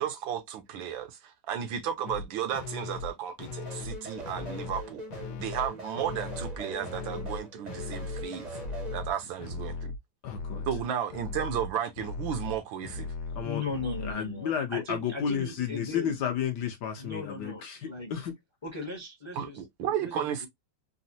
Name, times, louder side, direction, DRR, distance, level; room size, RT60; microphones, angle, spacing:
voice 1, 0.0-5.0 5.4-8.6 8.9-9.9 10.7-13.1 19.4-20.5, right 9 dB, 75° right, 1.4 m, -33 dB
sound 1, 2.0-2.3 2.5-3.1 3.4-4.0 4.2-4.8 5.1-5.7 6.0-6.5 6.8-7.4 7.7-8.3 8.5-9.1 9.4-10.0 10.2-14.1, left 4 dB, 80° left, 1.4 m, -38 dB
sound 2, 3.6-9.0, right 1 dB, 40° right, 0.6 m, -41 dB
voice 2, 10.2-10.6 13.3-13.6 14.0-18.3, left 8 dB, 65° left, 1.1 m, -32 dB
voice 3, 13.4-16.2 17.0-18.1 18.6-20.5, left 3 dB, 25° left, 0.6 m, -38 dB
4.1 x 2.0 x 2.6 m
omnidirectional pair, 2.2 m